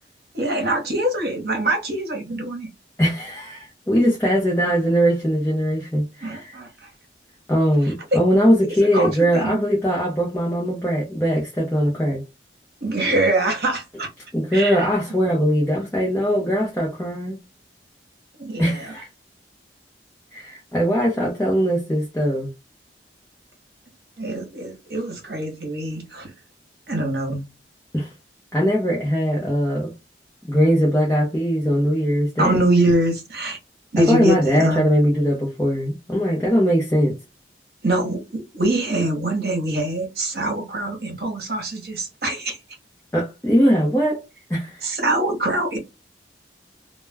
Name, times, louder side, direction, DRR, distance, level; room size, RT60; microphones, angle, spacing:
voice 1, 0.3-2.7 6.2-6.7 8.1-8.2 8.9-9.6 12.8-14.1 14.5-14.8 15.2-15.4 18.4-18.9 24.2-26.3 26.9-27.4 32.4-33.6 33.9-34.9 37.8-42.6 44.8-45.8, right 1 dB, 55° right, 0.9 m, -24 dB
voice 2, 3.0-6.6 7.5-12.2 14.3-17.4 18.6-19.1 20.3-22.5 27.9-28.1 28.5-29.9 30.4-32.5 34.0-37.2 43.1-44.2 44.5-44.9, equal, 10° left, 0.6 m, -20 dB
2.2 x 2.1 x 3.3 m
head